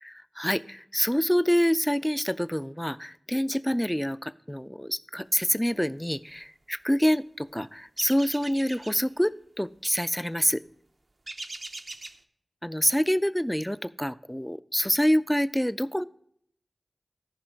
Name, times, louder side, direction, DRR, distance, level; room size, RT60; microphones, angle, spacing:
voice 1, 0.0-10.6 12.6-16.0, equal, 5° left, 15 dB, 0.4 m, -26 dB
sound 1, 8.0-9.0 11.3-12.2, right 2 dB, 60° right, 0.6 m, -41 dB
13.5 x 5.4 x 5.1 m, 0.67 s
cardioid pair, 40°, 0 cm